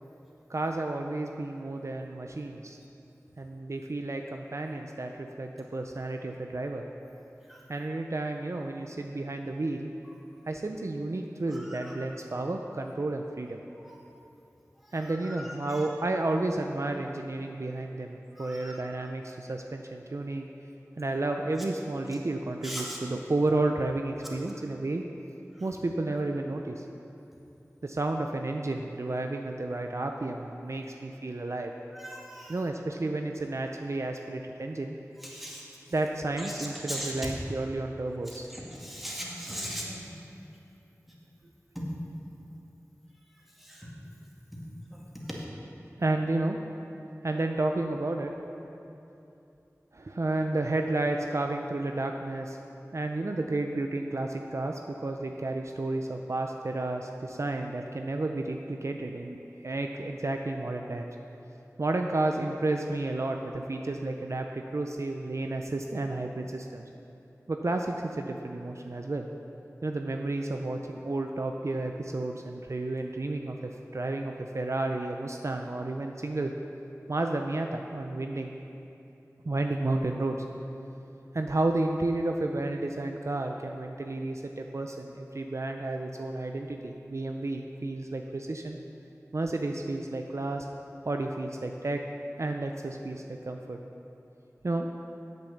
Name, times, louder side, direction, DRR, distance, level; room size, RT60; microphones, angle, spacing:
voice 1, 0.5-2.8 3.4-6.8 7.7-9.9 10.5-13.6 14.9-20.5 21.0-25.0 25.6-26.8 27.8-31.7 32.5-35.0 35.9-38.5 46.0-46.6 47.2-48.3 49.9-52.6 52.9-61.1 61.8-66.8 67.5-69.3 69.8-76.5 77.1-78.5 79.4-80.4 81.3-88.8 89.3-90.7 91.0-92.0 92.4-93.8 94.6-94.9, right 2 dB, 55° right, 3 dB, 0.5 m, -31 dB
voice 2, 11.5-12.0 13.8-13.9 14.8-15.8 18.4-18.8 22.6-23.0 25.5-25.6 31.9-32.6 35.2-35.6 36.4-37.3 38.3-40.4 41.7-41.8 43.6-43.9 44.9-45.4, equal, 5° right, -5 dB, 2.1 m, -40 dB
8.0 x 6.8 x 7.1 m, 2.8 s
wide cardioid pair, 45°, 6 cm